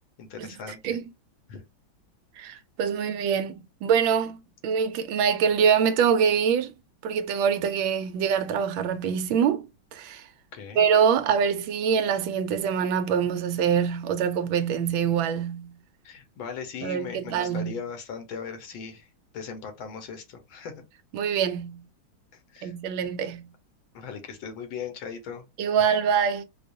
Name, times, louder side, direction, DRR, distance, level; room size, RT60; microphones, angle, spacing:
voice 1, 0.2-1.0 1.5-1.6 10.5-10.9 16.0-19.1 19.3-20.7 22.3-22.7 23.9-25.4, left 6 dB, 80° left, 1.8 m, -38 dB
voice 2, 2.4-4.4 4.6-6.7 7.0-9.7 9.9-10.2 10.8-15.8 16.8-17.7 21.1-21.8 22.6-23.5 25.6-26.4, right 7 dB, 75° right, 1.3 m, -24 dB
5.0 x 2.4 x 2.6 m
omnidirectional pair, 2.2 m